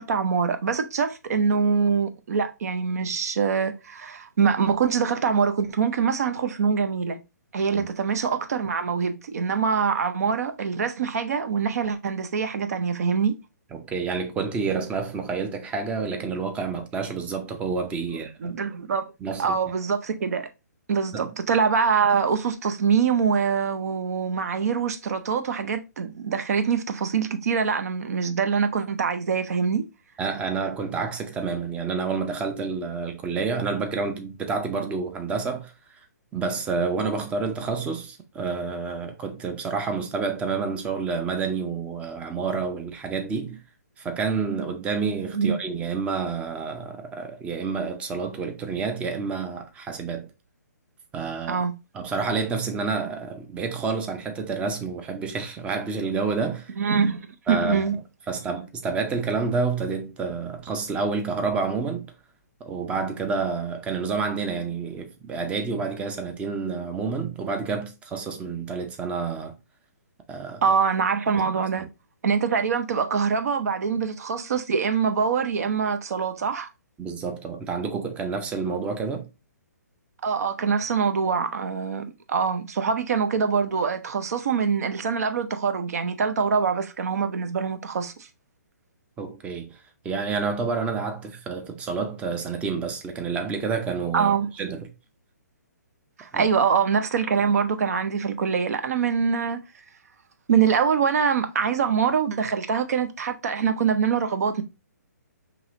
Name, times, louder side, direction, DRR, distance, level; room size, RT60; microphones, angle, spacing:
voice 1, 0.0-7.2 7.5-13.4 18.4-19.1 19.4-20.5 20.9-29.9 45.3-45.6 51.5-51.7 56.8-58.0 70.6-71.9 72.2-76.7 80.2-88.3 94.1-94.5 96.2-99.6 100.5-104.6, right 6 dB, 60° right, 0.6 m, -24 dB
voice 2, 13.7-18.5 19.2-19.6 21.1-21.3 30.2-35.7 36.3-43.6 44.0-50.3 51.1-51.6 51.9-56.7 57.5-57.9 58.3-62.1 62.6-69.6 70.3-70.6 77.0-79.3 89.2-89.8 90.0-94.9 96.3-96.5, right 4 dB, 15° right, 0.5 m, -29 dB
4.7 x 2.9 x 2.6 m
hypercardioid pair, 135°, 10 cm